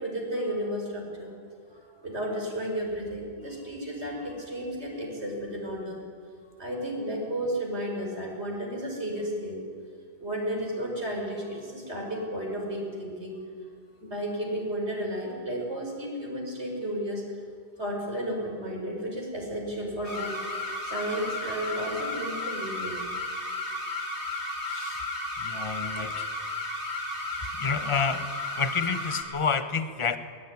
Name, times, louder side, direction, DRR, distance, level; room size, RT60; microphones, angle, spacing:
voice 1, 0.0-1.3 1.7-6.0 6.6-9.6 10.2-13.4 14.0-17.2 17.8-20.4 20.8-23.1, equal, 75° right, 0 dB, 5.8 m, -33 dB
sound 1, 20.0-29.2, left 2 dB, 75° left, 3.4 m, -33 dB
voice 2, 24.6-25.1 25.4-26.3 26.6-27.0 27.4-30.2, left 5 dB, 30° left, 10 dB, 1.1 m, -30 dB
22.0 x 19.5 x 9.7 m, 2.1 s
omnidirectional pair, 1.2 m